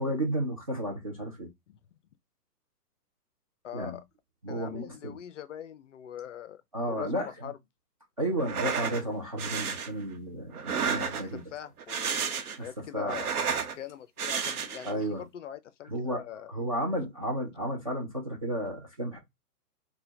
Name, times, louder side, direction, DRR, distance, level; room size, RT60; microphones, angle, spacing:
voice 1, 0.0-1.5 3.7-3.9 4.4-5.2 6.7-7.5 8.2-11.4 12.6-12.7 12.9-13.2 14.8-15.2 15.9-16.2 16.5-19.2, right 1 dB, 25° right, 0.3 m, -32 dB
voice 2, 3.6-4.0 4.5-7.6 11.1-12.3 12.6-13.3 13.8-16.5, left 10 dB, 50° left, 0.5 m, -42 dB
sound 1, 8.4-9.0 9.4-9.9 10.5-11.4 11.8-12.7 13.0-13.7 14.2-14.9, right 6 dB, 65° right, 0.9 m, -31 dB
4.1 x 2.2 x 2.6 m
hypercardioid pair, 130°, 48 cm